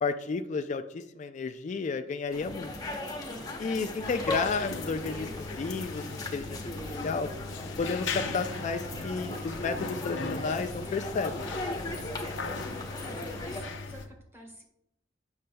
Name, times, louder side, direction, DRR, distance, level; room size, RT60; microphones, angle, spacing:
voice 1, 0.0-2.7 3.6-6.6 7.0-7.3 7.8-11.5, left 4 dB, 40° left, 8 dB, 0.3 m, -32 dB
sound 1, 2.3-13.6, left 1 dB, 20° left, 0.9 m, -38 dB
voice 2, 3.3-3.9 11.9-14.6, equal, 15° right, 0 dB, 1.4 m, -52 dB
sound 2, 4.0-14.1, left 4 dB, 75° left, 0.6 m, -39 dB
sound 3, 8.0-11.5, right 3 dB, 90° right, 0.5 m, -49 dB
8.4 x 6.4 x 2.2 m, 0.79 s
head